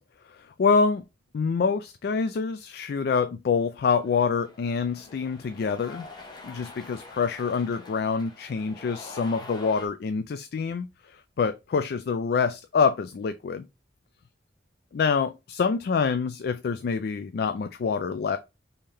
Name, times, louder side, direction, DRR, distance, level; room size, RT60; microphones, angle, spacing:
voice 1, 0.3-1.0 1.3-6.1 6.4-13.7 14.9-18.4, left 5 dB, 60° left, 0.3 m, -26 dB
Cheering, 4.0-9.9, left 2 dB, 25° left, 1.1 m, -46 dB
5.4 x 2.8 x 3.3 m
head